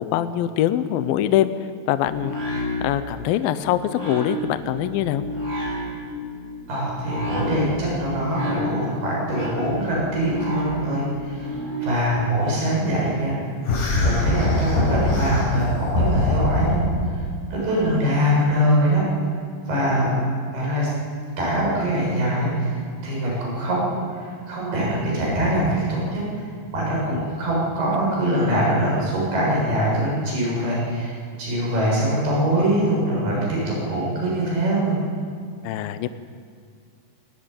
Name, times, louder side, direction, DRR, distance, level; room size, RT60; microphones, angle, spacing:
voice 1, 0.0-1.5 1.9-5.2 17.9-18.1 20.0-20.3 27.1-27.3 35.6-36.1, left 12 dB, 80° left, 12 dB, 2.1 m, -24 dB
sound 1, 2.0-12.0, left 1 dB, 10° right, 6.1 m, -31 dB
voice 2, 6.7-11.5 11.8-13.4 13.9-16.9 17.5-19.0 19.7-20.2 20.5-20.9 21.4-22.7 23.0-26.2 26.7-35.0, right 1 dB, 60° right, -4 dB, 9.2 m, -23 dB
sound 2, 13.7-17.1, left 2 dB, 60° left, 6.5 m, -22 dB
20.5 x 17.5 x 9.1 m, 2.1 s
omnidirectional pair, 5.1 m